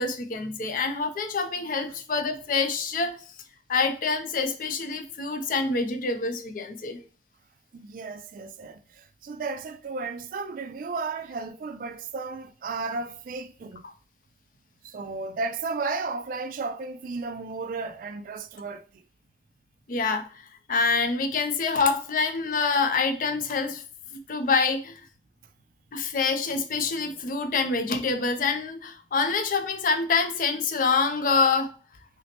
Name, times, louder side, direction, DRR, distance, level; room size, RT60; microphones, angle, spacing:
voice 1, 0.0-3.2 3.7-7.0 19.9-20.3 20.7-23.8 24.3-25.0 25.9-31.7, left 4 dB, 50° left, 0.5 m, -26 dB
voice 2, 7.7-13.8 14.8-18.8, right 4 dB, 50° right, 0.3 m, -34 dB
5.7 x 2.1 x 2.9 m
head